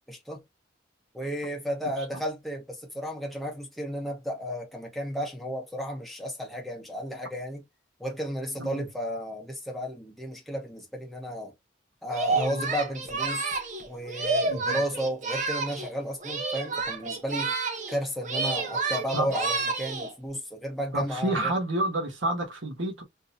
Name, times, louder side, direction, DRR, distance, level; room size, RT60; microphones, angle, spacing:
voice 1, 0.1-0.4 1.1-7.6 8.0-11.5 12.0-13.5 13.9-17.5 17.9-21.5, equal, ahead, 0.9 m, -33 dB
Singing, 12.1-15.9 16.2-18.0 18.2-20.1, right 4 dB, 40° right, 0.8 m, -30 dB
voice 2, 12.3-12.6 14.5-14.8 19.1-19.3 20.9-23.0, right 1 dB, 80° right, 1.2 m, -29 dB
3.8 x 2.7 x 2.6 m
head